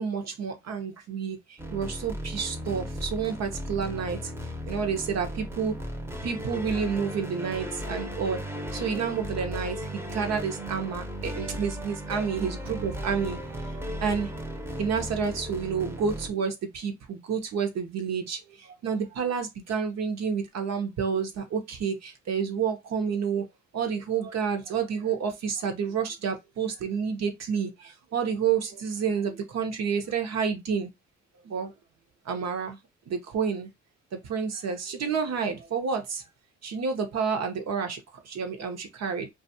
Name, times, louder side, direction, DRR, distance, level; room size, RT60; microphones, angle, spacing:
voice 1, 0.0-4.3 4.7-5.9 6.2-13.4 13.7-14.3 14.8-23.5 23.7-30.9 31.4-31.7 32.2-32.8 33.1-33.7 34.1-36.2 36.6-39.3, right 6 dB, 60° right, 0.8 m, -30 dB
sound 1, 1.6-16.3, equal, 10° right, 0.7 m, -36 dB
2.5 x 2.4 x 2.7 m
cardioid pair, 90°, 30 cm